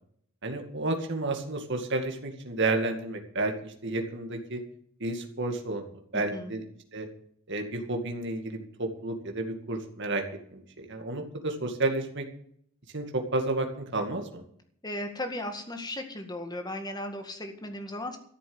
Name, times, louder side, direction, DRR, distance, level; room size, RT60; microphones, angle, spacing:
voice 1, 0.4-4.6 5.0-6.6 6.9-7.1 7.5-10.2 10.5-12.3 12.9-14.4, right 2 dB, 55° right, 4 dB, 2.2 m, -31 dB
voice 2, 6.1-6.5 14.8-18.2, left 1 dB, 20° left, 6 dB, 1.9 m, -36 dB
13.5 x 7.6 x 7.9 m, 0.64 s
head